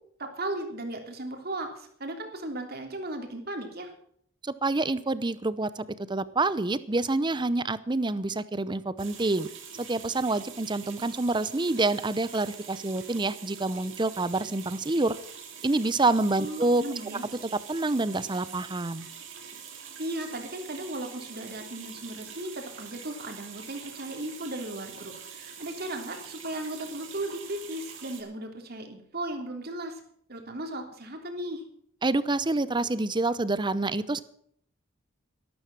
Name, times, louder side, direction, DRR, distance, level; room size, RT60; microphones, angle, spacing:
voice 1, 0.2-3.9 16.3-17.2 19.7-30.0 30.3-31.6, right 1 dB, 50° right, 5 dB, 3.1 m, -36 dB
voice 2, 4.4-9.5 9.8-15.2 15.6-16.8 17.7-19.1 32.0-34.2, right 2 dB, 25° right, 16 dB, 0.7 m, -27 dB
sound 1, 9.0-28.2, right 7 dB, 70° right, 3.4 m, -45 dB
13.0 x 12.5 x 6.1 m, 0.65 s
head